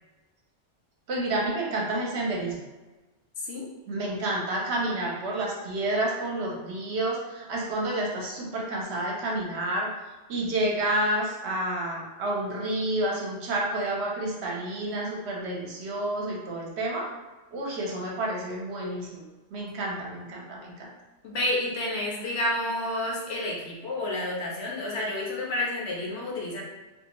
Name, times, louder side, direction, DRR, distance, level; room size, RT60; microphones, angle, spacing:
voice 1, 1.1-2.6 3.9-9.9 10.3-17.1 17.5-19.2 19.5-20.9, right 1 dB, 65° right, -2 dB, 0.8 m, -29 dB
voice 2, 3.4-3.7 21.2-26.6, left 1 dB, 65° left, -3 dB, 0.9 m, -30 dB
2.5 x 2.3 x 2.9 m, 1.2 s
omnidirectional pair, 1.3 m